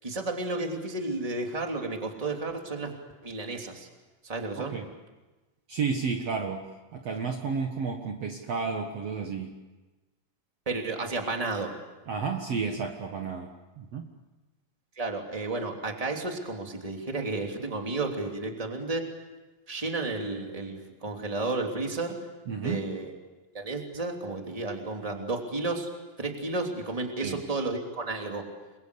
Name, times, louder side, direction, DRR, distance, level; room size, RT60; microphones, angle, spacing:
voice 1, 0.0-2.9 3.2-3.9 4.2-4.8 10.7-11.7 15.0-19.1 19.7-22.2 22.5-23.1 23.5-25.9 26.2-28.4, right 3 dB, 10° right, 2 dB, 2.6 m, -32 dB
voice 2, 4.6-4.9 5.7-6.6 6.9-9.5 12.1-13.5 13.8-14.1 22.5-22.9 27.2-27.4, right 5 dB, 55° right, 3 dB, 2.3 m, -31 dB
29.5 x 22.5 x 8.3 m, 1.2 s
omnidirectional pair, 3.9 m